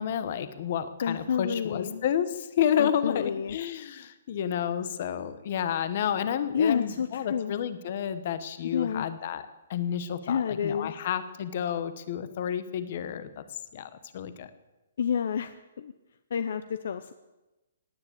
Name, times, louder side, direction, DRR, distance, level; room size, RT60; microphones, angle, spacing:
voice 1, 0.0-13.4 13.7-14.5, left 9 dB, 35° left, 13 dB, 1.1 m, -30 dB
voice 2, 1.0-2.0 2.8-3.6 6.5-7.5 8.7-9.1 10.2-10.9 15.0-15.9 16.3-17.1, left 7 dB, 55° left, 11 dB, 0.7 m, -29 dB
17.5 x 9.7 x 8.6 m, 1.0 s
hypercardioid pair, 170°, 0 cm